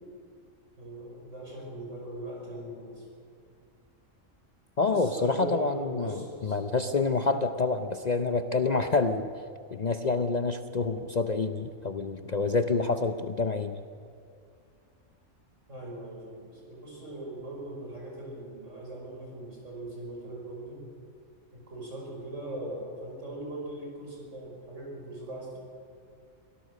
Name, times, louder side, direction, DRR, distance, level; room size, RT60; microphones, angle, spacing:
voice 1, 0.8-3.1 4.8-6.6 15.7-20.9 21.5-25.6, right 1 dB, 70° right, -1 dB, 5.8 m, -40 dB
voice 2, 4.8-6.1 6.4-9.3 9.7-13.8, left 3 dB, 40° left, 8 dB, 0.7 m, -27 dB
24.5 x 17.5 x 6.5 m, 2.2 s
omnidirectional pair, 1.3 m